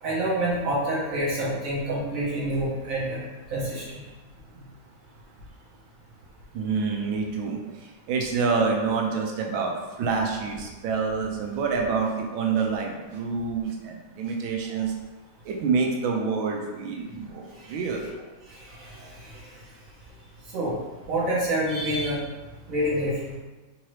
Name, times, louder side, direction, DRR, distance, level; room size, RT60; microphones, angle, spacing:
voice 1, 0.0-4.0 17.6-17.7 18.5-19.3 20.5-20.7 21.1-22.2 22.7-23.3, right 1 dB, 50° right, -7 dB, 1.2 m, -27 dB
voice 2, 6.5-14.9 15.4-18.0, right 5 dB, 75° right, 1 dB, 1.3 m, -27 dB
3.8 x 2.9 x 3.1 m, 1.2 s
omnidirectional pair, 2.4 m